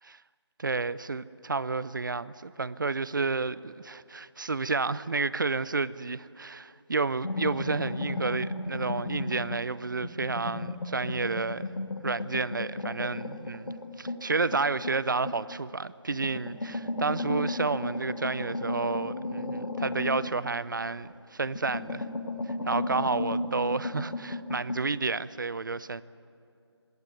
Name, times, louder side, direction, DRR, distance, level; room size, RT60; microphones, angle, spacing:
voice 1, 0.6-11.6 12.0-22.1 22.5-26.0, right 4 dB, 45° right, 0.6 m, -31 dB
sound 1, 7.2-9.7 10.0-15.6 16.1-21.1 21.5-24.8, left 2 dB, 65° left, 2.0 m, -34 dB
21.0 x 18.0 x 9.7 m
figure-of-eight pair, 160°, 14 cm